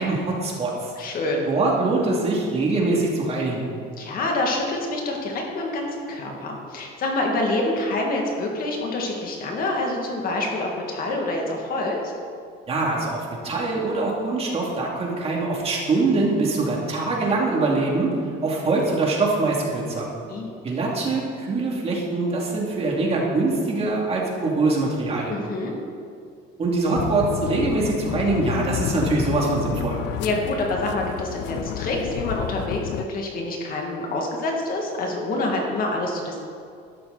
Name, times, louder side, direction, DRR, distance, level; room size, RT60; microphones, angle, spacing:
voice 1, 0.0-0.9 1.4-3.7 12.7-18.1 18.4-20.1 20.6-25.4 26.6-30.0, right 3 dB, 30° right, -3 dB, 2.6 m, -23 dB
voice 2, 1.0-1.5 4.0-12.1 20.3-20.5 25.3-25.7 30.2-36.4, left 2 dB, 45° left, 0 dB, 2.2 m, -27 dB
sound 1, 26.9-33.1, left 12 dB, 65° left, 0.5 m, -30 dB
12.5 x 12.0 x 4.1 m, 2.4 s
cardioid pair, 135°, 20 cm